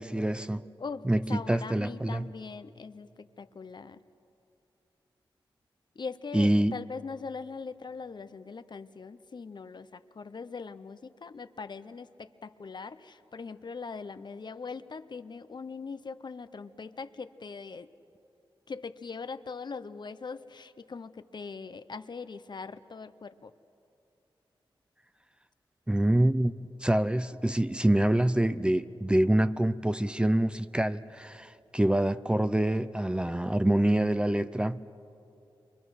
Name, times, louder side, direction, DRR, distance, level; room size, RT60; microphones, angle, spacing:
voice 1, 0.0-0.6 1.1-2.3 6.3-6.7 25.9-26.5 26.8-34.8, right 1 dB, 10° right, 0.5 m, -26 dB
voice 2, 0.8-4.0 5.9-17.9 18.7-23.5, left 4 dB, 55° left, 0.7 m, -41 dB
28.5 x 24.0 x 6.4 m
cardioid pair, 65°, 9 cm